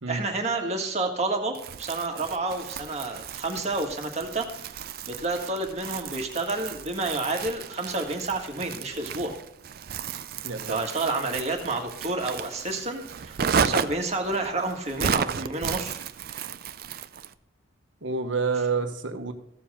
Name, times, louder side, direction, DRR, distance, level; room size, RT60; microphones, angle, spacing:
voice 1, 0.1-9.3 10.7-16.0, right 2 dB, 35° right, 2 dB, 1.6 m, -30 dB
Crumpling crinkling, 1.5-17.3, right 7 dB, 50° right, 0.4 m, -33 dB
voice 2, 10.4-10.8 18.0-19.3, right 4 dB, 70° right, 6 dB, 1.2 m, -28 dB
15.0 x 7.2 x 3.6 m, 0.77 s
head